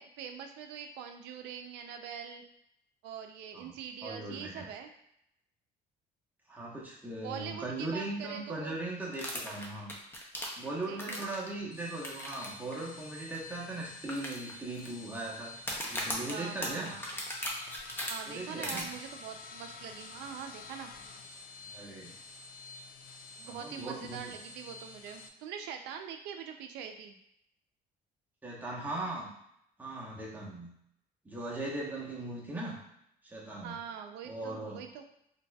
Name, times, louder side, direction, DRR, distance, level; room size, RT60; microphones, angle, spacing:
voice 1, 0.0-2.4 3.0-4.9 7.2-8.8 10.9-11.3 16.0-17.1 18.1-20.9 23.4-27.2 33.6-35.0, right 8 dB, 90° right, 6 dB, 0.4 m, -43 dB
voice 2, 4.0-4.7 6.5-9.9 10.6-15.5 15.9-16.9 18.3-18.9 21.7-22.1 23.4-24.4 28.4-29.3 29.8-30.7 31.2-32.8 33.2-33.8 34.2-34.8, right 2 dB, 10° right, -5 dB, 1.0 m, -39 dB
sound 1, 9.1-11.5 12.0-12.5 12.7-12.8 13.3-13.4 14.1-14.9 15.6-18.1 18.6-18.8, equal, 15° left, 0.7 m, -37 dB
sound 2, 11.6-25.3, left 3 dB, 60° left, 0.4 m, -49 dB
4.0 x 2.6 x 2.3 m, 0.76 s
cardioid pair, 110°, 17 cm